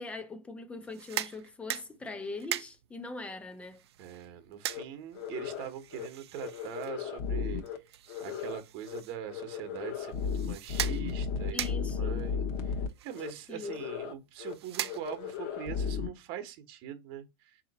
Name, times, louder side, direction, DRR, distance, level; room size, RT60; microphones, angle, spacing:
voice 1, 0.0-3.8 11.5-12.4 13.5-13.8, left 3 dB, 10° left, 0.5 m, -41 dB
sound 1, 0.8-15.5, right 12 dB, 85° right, 0.4 m, -42 dB
voice 2, 4.0-12.4 12.6-17.6, right 10 dB, 45° right, 1.0 m, -43 dB
sound 2, 4.7-4.8 5.2-5.7 5.9-6.1 6.4-7.8 8.1-8.6 8.9-9.0 9.3-12.9 13.2-13.3 13.6-14.1 14.4-14.5 14.8-16.1, left 6 dB, 45° left, 0.9 m, -35 dB
3.7 x 2.8 x 4.0 m
supercardioid pair, 140°, 13 cm